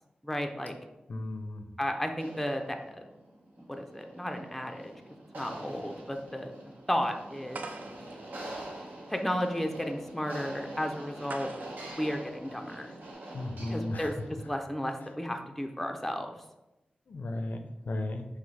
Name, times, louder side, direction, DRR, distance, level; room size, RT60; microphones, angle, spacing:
voice 1, 0.2-0.7 1.8-3.0 3.7-4.9 5.3-6.6 6.9-7.7 9.1-11.5 11.8-12.9 13.6-16.4, equal, 5° left, 4 dB, 0.4 m, -33 dB
voice 2, 1.1-1.6 13.3-14.1 17.1-18.2, left 1 dB, 65° left, 5 dB, 0.4 m, -35 dB
sound 1, 2.1-14.5, right 1 dB, 75° right, 0.8 m, -45 dB
sound 2, 7.5-13.1, right 3 dB, 60° right, 0.4 m, -47 dB
5.9 x 2.0 x 3.2 m, 0.98 s
wide cardioid pair, 85°, 3 cm